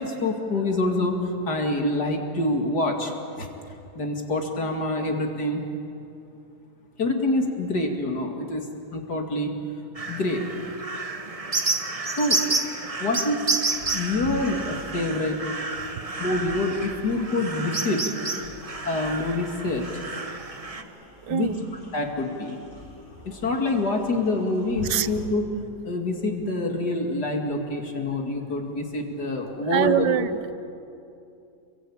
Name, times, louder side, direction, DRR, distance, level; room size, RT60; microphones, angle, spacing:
voice 1, 0.0-3.5 3.9-5.6 7.0-9.5 10.1-10.4 12.2-12.4 13.0-13.5 13.9-15.5 16.2-18.1 18.8-20.0 21.3-21.5 21.9-22.6 23.3-25.5 25.8-30.0, left 2 dB, 70° left, 3 dB, 3.0 m, -26 dB
sound 1, 9.9-20.8, right 3 dB, 25° right, 1.2 m, -30 dB
sound 2, 12.8-25.2, left 1 dB, 50° left, 8.1 m, -45 dB
voice 2, 21.3-21.6 24.8-25.1 29.7-30.5, right 11 dB, 90° right, 14 dB, 1.5 m, -24 dB
27.5 x 23.5 x 8.7 m, 2.6 s
omnidirectional pair, 1.8 m